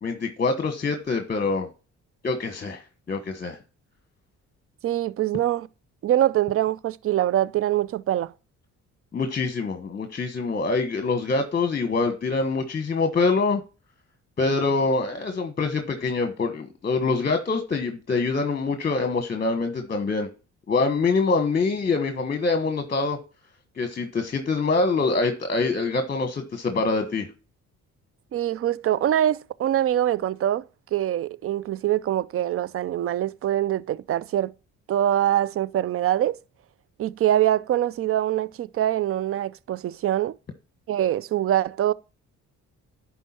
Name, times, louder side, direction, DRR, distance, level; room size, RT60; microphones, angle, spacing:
voice 1, 0.0-1.7 2.2-3.6 9.1-13.6 14.4-20.3 20.7-23.2 23.8-27.3, left 3 dB, 30° left, 1.2 m, -25 dB
voice 2, 4.8-5.7 6.0-8.3 28.3-30.6 30.9-34.5 34.9-36.4 37.0-40.4 40.9-41.9, right 12 dB, 50° right, 0.5 m, -24 dB
11.0 x 4.5 x 4.3 m
cardioid pair, 90°, 30 cm